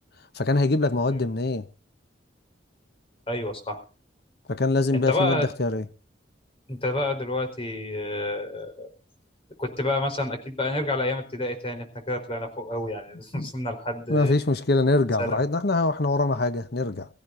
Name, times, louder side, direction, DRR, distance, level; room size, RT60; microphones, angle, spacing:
voice 1, 0.4-1.6 4.5-5.8 13.3-13.5 14.1-17.1, left 2 dB, 60° left, 1.0 m, -23 dB
voice 2, 3.3-3.8 4.9-5.5 6.7-8.9 9.6-14.4 15.2-15.4, left 2 dB, 30° left, 4.3 m, -29 dB
24.0 x 15.0 x 2.7 m
head